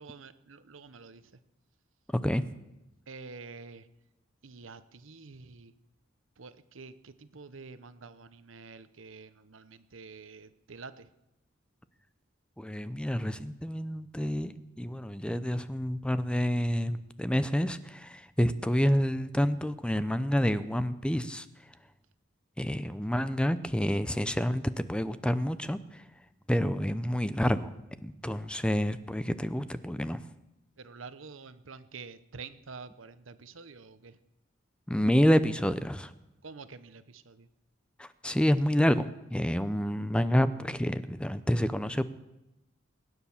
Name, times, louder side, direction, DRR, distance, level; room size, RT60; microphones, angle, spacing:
voice 1, 0.0-1.3 3.1-3.9 4.4-5.7 6.4-11.1 30.8-34.2 36.4-37.5, right 4 dB, 80° right, 13 dB, 0.9 m, -48 dB
voice 2, 12.6-21.5 22.6-26.0 26.5-27.7 28.0-30.2 34.9-36.1 38.0-42.0, equal, 5° left, 13 dB, 0.6 m, -28 dB
20.5 x 9.8 x 7.1 m, 0.93 s
head